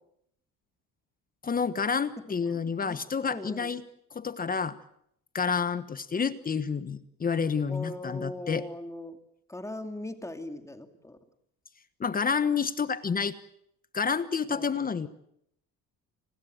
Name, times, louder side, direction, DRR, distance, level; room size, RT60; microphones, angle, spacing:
voice 1, 1.4-3.8 4.1-4.8 5.3-8.6 12.0-13.4 13.9-15.1, left 6 dB, 25° left, 14 dB, 1.3 m, -29 dB
voice 2, 2.5-3.0 3.3-3.7 7.7-9.2 9.5-11.2 14.5-14.8, left 1 dB, 10° left, 8 dB, 2.6 m, -40 dB
29.5 x 20.5 x 7.9 m, 0.72 s
cardioid pair, 130°, 34 cm